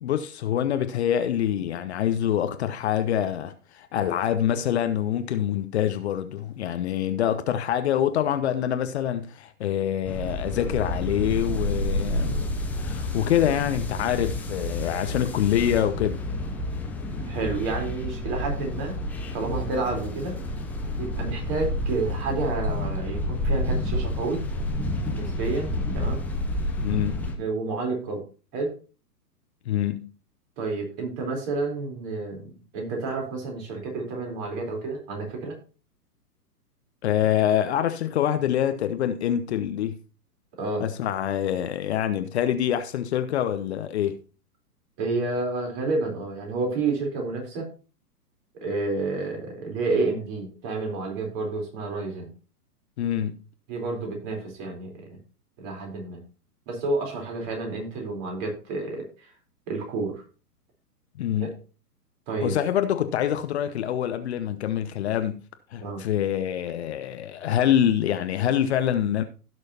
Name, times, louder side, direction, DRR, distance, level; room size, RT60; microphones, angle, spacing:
voice 1, 0.0-12.4 12.7-16.2 26.8-27.3 29.7-30.1 37.0-40.0 40.8-44.2 53.0-53.4 61.2-61.5 62.4-65.4 65.7-69.2, left 10 dB, 45° left, 0.8 m, -25 dB
sound 1, 10.0-27.4, left 1 dB, 5° left, 0.6 m, -29 dB
voice 2, 17.3-19.0 19.3-20.3 21.0-24.4 25.1-25.7 25.9-26.2 27.4-28.2 28.5-28.8 30.6-35.6 40.6-40.9 45.0-47.7 48.5-52.3 53.7-55.1 55.6-56.2 56.7-59.3 59.7-60.2 62.3-62.6 65.8-66.0, right 3 dB, 35° right, 3.9 m, -30 dB
16.0 x 6.4 x 2.9 m
figure-of-eight pair, 120°, 47 cm